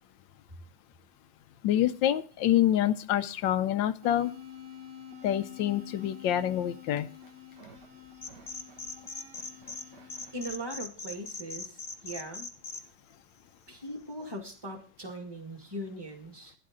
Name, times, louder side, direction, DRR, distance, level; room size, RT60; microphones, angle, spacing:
voice 1, 1.6-4.3 5.2-7.1, left 11 dB, 90° left, 12 dB, 1.4 m, -26 dB
sound 1, 4.0-10.5, left 8 dB, 60° right, 2.3 m, -48 dB
sound 2, 8.2-9.8 10.1-12.8, left 3 dB, 35° left, 0.9 m, -40 dB
voice 2, 10.3-12.5 13.7-16.5, right 1 dB, 15° right, 4 dB, 1.8 m, -40 dB
12.5 x 10.5 x 3.7 m, 0.38 s
omnidirectional pair, 2.0 m